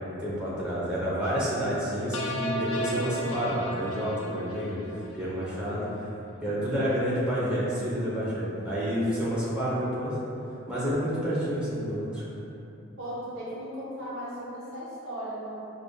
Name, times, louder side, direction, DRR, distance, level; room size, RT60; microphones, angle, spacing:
voice 1, 0.0-6.1 6.4-10.2 10.7-12.2, equal, 5° right, -10 dB, 0.8 m, -29 dB
sound 1, 2.1-5.5, equal, 75° left, 0.4 m, -34 dB
voice 2, 13.0-15.6, equal, 80° right, -9 dB, 1.0 m, -37 dB
4.7 x 2.5 x 2.3 m, 2.9 s
head